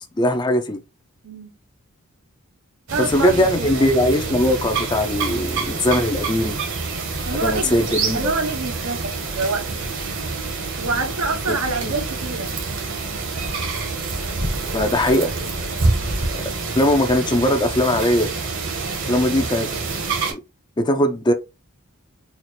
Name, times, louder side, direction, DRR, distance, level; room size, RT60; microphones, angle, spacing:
voice 1, 0.2-0.8 3.1-6.6 7.4-8.3 11.5-11.6 11.8-11.9 14.7-15.3 16.8-18.3 19.0-19.7 20.3-20.4 20.8-21.3, left 1 dB, 20° left, 0.5 m, -20 dB
voice 2, 1.2-1.6 2.9-3.9 5.3-5.6 7.3-7.8 8.1-9.8 10.8-12.5 15.8-16.1 19.3-19.5, right 3 dB, 80° right, 0.8 m, -27 dB
sound 1, 2.9-20.3, right 3 dB, 60° right, 1.1 m, -27 dB
4.2 x 2.4 x 3.1 m
head